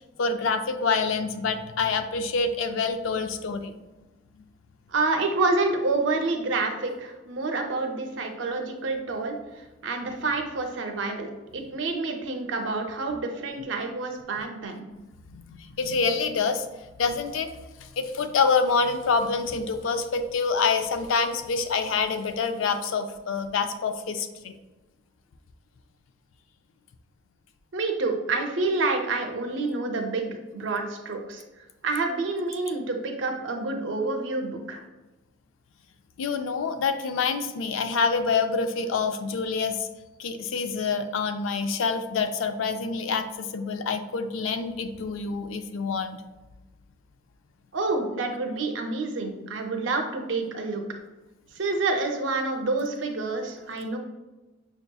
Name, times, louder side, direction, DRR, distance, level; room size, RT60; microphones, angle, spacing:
voice 1, 0.2-3.8 4.4-4.5 15.3-16.7 17.0-17.5 17.8-24.5 36.2-39.9 40.2-46.2, left 4 dB, 90° left, 8 dB, 0.4 m, -26 dB
voice 2, 4.9-14.9 27.7-30.3 30.5-31.4 31.8-34.9 47.7-50.8 51.5-54.0, right 3 dB, 70° right, 4 dB, 0.6 m, -28 dB
5.6 x 2.8 x 2.3 m, 1.1 s
head